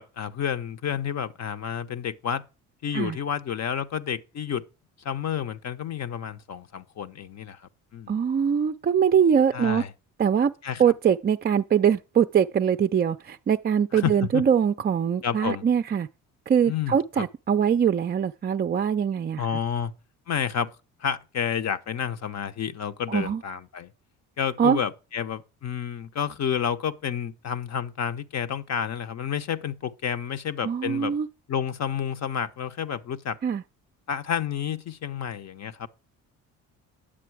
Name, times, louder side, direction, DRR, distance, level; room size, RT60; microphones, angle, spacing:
voice 1, 0.0-2.4 2.8-4.6 5.0-7.6 7.9-8.2 9.5-9.9 10.6-10.8 13.9-14.4 15.2-15.6 16.7-17.3 19.4-19.9 20.3-20.7 21.0-23.9 24.4-31.1 31.5-33.4 34.1-35.9, left 8 dB, 50° left, 0.9 m, -30 dB
voice 2, 8.1-9.8 10.2-10.5 10.8-16.1 16.5-19.4 23.1-23.4 24.6-24.8 30.6-31.3 33.4-33.6, right 8 dB, 30° right, 0.4 m, -22 dB
10.0 x 7.5 x 4.7 m
supercardioid pair, 75°, 35 cm